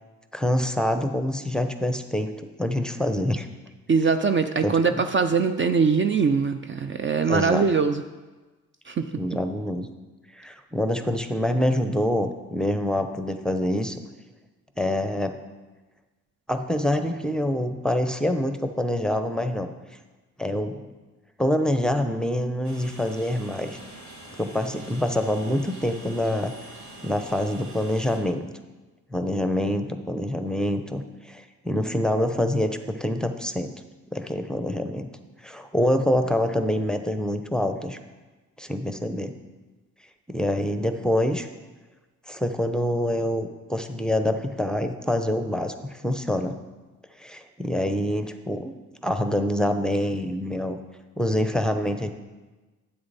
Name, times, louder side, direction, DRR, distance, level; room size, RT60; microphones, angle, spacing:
voice 1, 0.3-2.3 2.6-3.5 4.6-4.8 7.3-7.7 9.2-9.9 10.3-14.0 14.8-15.4 16.5-19.7 20.4-20.8 21.4-23.8 24.4-26.5 27.0-28.5 29.1-33.7 34.1-35.1 35.4-38.0 38.6-39.3 40.3-41.5 42.3-46.6 47.2-48.8 49.0-50.8 51.2-52.1, left 1 dB, ahead, 8 dB, 0.7 m, -26 dB
voice 2, 3.9-8.0 8.9-9.1, right 5 dB, 35° right, 8 dB, 0.5 m, -22 dB
Train, 22.6-28.2, right 1 dB, 60° right, 2.4 m, -44 dB
9.5 x 7.9 x 4.1 m, 1.2 s
cardioid pair, 70°, 33 cm